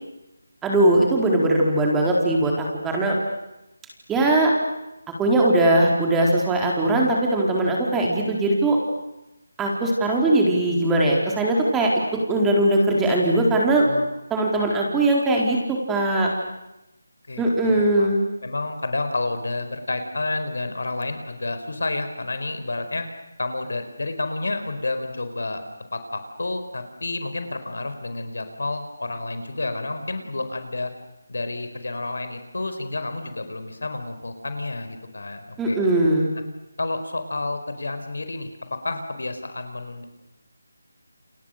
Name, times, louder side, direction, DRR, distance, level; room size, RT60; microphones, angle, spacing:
voice 1, 0.6-3.2 4.1-4.5 5.2-8.8 9.6-11.9 12.3-13.9 14.3-16.3 17.4-18.2 35.6-36.3, right 1 dB, 10° right, -1 dB, 4.3 m, -20 dB
voice 2, 13.8-14.2 14.5-14.8 17.3-18.1 18.4-23.0 23.4-25.6 25.9-30.9 31.3-35.8 36.8-40.0, left 2 dB, 65° left, 8 dB, 4.7 m, -30 dB
29.5 x 29.5 x 6.7 m, 0.93 s
figure-of-eight pair, 160°, 0 cm